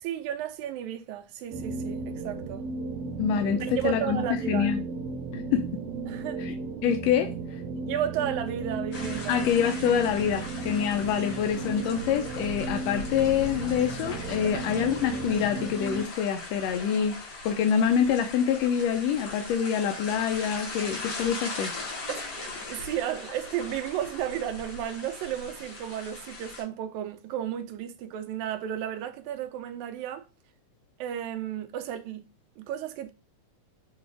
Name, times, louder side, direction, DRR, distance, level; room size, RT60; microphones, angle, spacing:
voice 1, 0.0-2.6 3.8-4.7 6.1-6.4 7.9-9.5 14.5-14.6 22.1-30.3 31.0-32.3 32.6-33.1, right 10 dB, 90° right, 2.0 m, -33 dB
sound 1, 1.5-16.1, right 3 dB, 70° right, 1.8 m, -35 dB
voice 2, 3.2-4.9 5.3-5.7 6.4-6.5 6.8-7.6 9.3-17.1 17.4-21.8, left 8 dB, 80° left, 1.6 m, -26 dB
sound 2, 8.9-26.6, left 3 dB, 60° left, 2.8 m, -40 dB
6.7 x 2.4 x 3.3 m
omnidirectional pair, 3.3 m